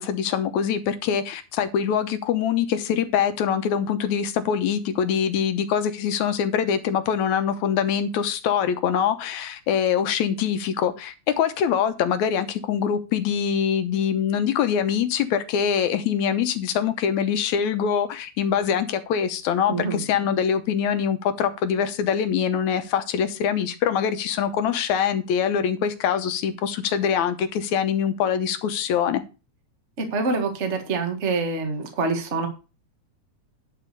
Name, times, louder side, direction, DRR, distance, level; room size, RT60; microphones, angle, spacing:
voice 1, 0.0-29.2, left 8 dB, 75° left, 2.3 m, -24 dB
voice 2, 19.7-20.0 30.0-32.5, right 4 dB, 30° right, 1.6 m, -26 dB
10.5 x 4.3 x 6.7 m
omnidirectional pair, 3.4 m